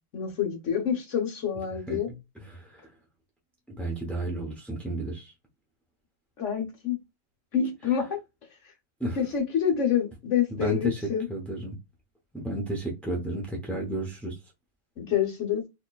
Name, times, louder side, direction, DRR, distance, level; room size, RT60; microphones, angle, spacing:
voice 1, 0.1-2.1 6.4-7.0 7.5-8.2 9.2-11.3 15.0-15.6, left 8 dB, 50° left, 1.2 m, -27 dB
voice 2, 2.4-2.9 3.7-5.3 9.0-9.2 10.5-11.0 11.3-11.8 12.3-14.3, right 1 dB, ahead, 0.3 m, -32 dB
4.2 x 3.0 x 2.4 m
omnidirectional pair, 1.9 m